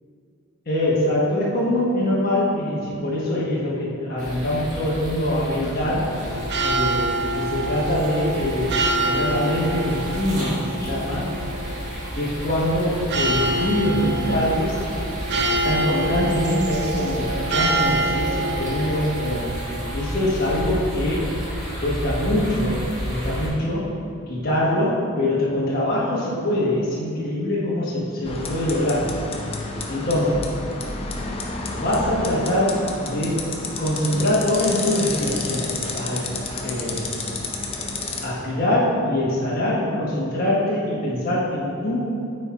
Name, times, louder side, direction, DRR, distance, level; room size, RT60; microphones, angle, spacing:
voice 1, 0.7-6.0 6.6-8.8 9.0-11.3 12.1-14.7 15.3-19.5 19.9-21.3 21.8-23.9 24.3-29.1 29.9-30.4 31.8-32.8 33.0-33.4 33.8-36.3 36.6-37.1 38.2-42.0, left 1 dB, 45° left, -7 dB, 1.2 m, -23 dB
sound 1, 4.2-23.5, equal, 35° right, 1.6 m, -32 dB
sound 2, 6.2-19.9, right 2 dB, 50° right, 0.6 m, -27 dB
sound 3, 28.2-38.2, left 3 dB, 25° left, 0.6 m, -30 dB
6.4 x 4.3 x 4.6 m, 2.4 s
head